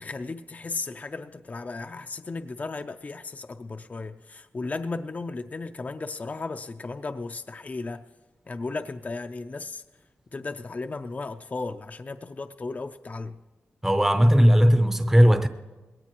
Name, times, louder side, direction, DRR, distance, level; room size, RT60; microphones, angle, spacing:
voice 1, 0.0-8.0 8.5-9.8 10.3-13.4, left 3 dB, 35° left, 0.5 m, -35 dB
voice 2, 13.8-15.5, equal, 10° right, 0.6 m, -17 dB
20.5 x 17.5 x 3.0 m
cardioid pair, 75°, 5 cm